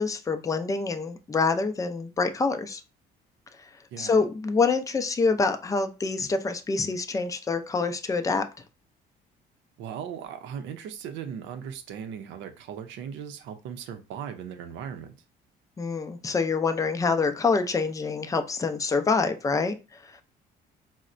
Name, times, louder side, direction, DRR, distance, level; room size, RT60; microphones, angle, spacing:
voice 1, 0.0-2.8 3.6-3.7 4.0-8.5 15.8-20.2, left 4 dB, 15° left, 0.4 m, -26 dB
voice 2, 9.8-15.1, right 8 dB, 75° right, 0.6 m, -38 dB
4.1 x 2.1 x 2.5 m
cardioid pair, 100°, 19 cm